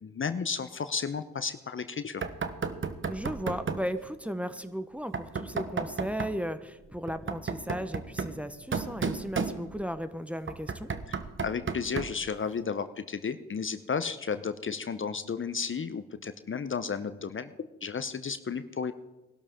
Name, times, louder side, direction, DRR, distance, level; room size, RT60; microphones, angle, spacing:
voice 1, 0.0-2.2 11.1-18.9, left 6 dB, 40° left, 11 dB, 0.9 m, -33 dB
Knock, 2.2-3.9 5.1-6.4 7.1-10.0 10.5-12.3, right 5 dB, 40° right, 1.1 m, -34 dB
voice 2, 3.1-10.9, equal, 5° right, 10 dB, 1.0 m, -35 dB
19.5 x 12.0 x 3.7 m, 1.0 s
hypercardioid pair, 40°, 32 cm